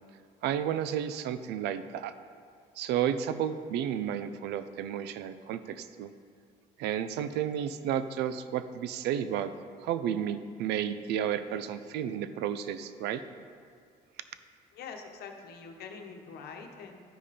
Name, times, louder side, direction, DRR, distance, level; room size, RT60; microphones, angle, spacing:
voice 1, 0.4-2.1 2.8-6.1 6.8-9.5 9.8-13.2, right 9 dB, 80° right, 12 dB, 0.5 m, -32 dB
voice 2, 14.7-17.0, left 5 dB, 70° left, 3 dB, 1.1 m, -44 dB
12.5 x 5.2 x 4.2 m, 2.2 s
cardioid pair, 110°, 17 cm